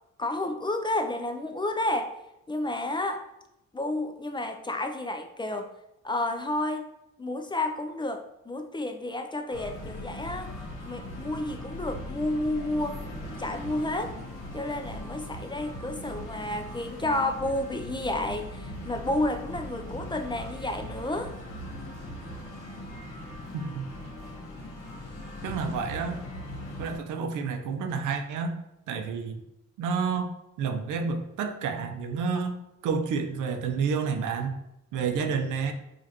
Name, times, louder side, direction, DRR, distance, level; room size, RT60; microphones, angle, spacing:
voice 1, 0.2-2.2 2.5-3.2 3.7-5.7 6.0-6.9 7.2-10.5 10.8-13.0 13.4-14.1 14.5-21.3, left 1 dB, 15° left, 5 dB, 0.4 m, -31 dB
sound 1, 9.5-27.0, left 1 dB, 65° left, 1.2 m, -40 dB
voice 2, 25.4-26.2 26.8-28.5 28.9-29.4 29.8-30.3 30.6-32.6 32.8-34.6 34.9-35.7, right 5 dB, 85° right, 6 dB, 0.6 m, -29 dB
5.0 x 2.4 x 2.8 m, 0.85 s
cardioid pair, 90°, 30 cm